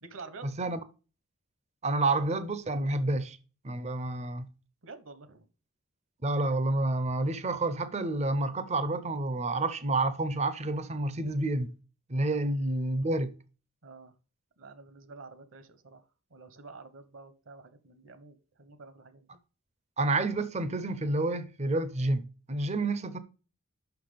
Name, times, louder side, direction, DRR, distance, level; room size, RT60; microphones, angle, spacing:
voice 1, 0.0-0.5 4.8-5.5 12.2-12.4 13.8-14.1 14.6-16.0 16.3-19.3, right 4 dB, 60° right, 1.0 m, -49 dB
voice 2, 1.8-3.4 3.6-4.5 6.2-11.7 12.1-13.3 20.0-23.2, right 2 dB, 30° right, 0.6 m, -29 dB
5.9 x 5.9 x 5.0 m
head